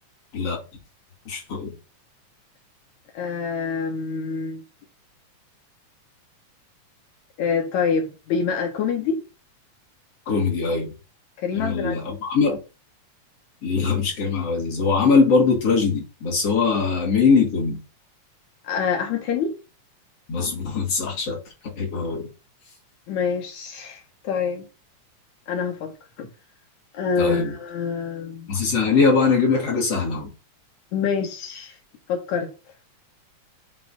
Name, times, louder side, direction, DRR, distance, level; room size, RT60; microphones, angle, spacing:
voice 1, 1.3-1.7 10.3-10.9 11.5-12.6 13.6-17.8 20.3-21.4 21.6-22.3 27.2-27.5 28.5-30.3, left 4 dB, 50° left, 3.1 m, -21 dB
voice 2, 3.1-4.6 7.4-9.2 11.4-12.2 18.6-19.5 23.1-24.7 25.5-26.3 26.9-28.5 30.9-31.8 32.1-32.5, left 6 dB, 75° left, 2.4 m, -26 dB
7.6 x 3.2 x 5.7 m
omnidirectional pair, 3.4 m